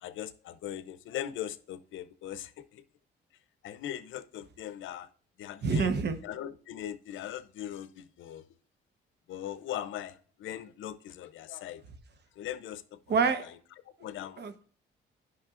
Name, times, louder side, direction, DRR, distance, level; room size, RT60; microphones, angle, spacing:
voice 1, 0.0-2.8 3.6-5.1 5.4-5.9 6.2-8.4 9.3-11.8 12.4-12.8 13.1-13.5 14.0-14.5, left 11 dB, 75° left, 13 dB, 0.6 m, -40 dB
voice 2, 5.6-6.2 13.1-13.4 14.4-14.6, right 5 dB, 55° right, 9 dB, 1.0 m, -27 dB
10.5 x 5.5 x 2.5 m, 0.43 s
cardioid pair, 90°, 20 cm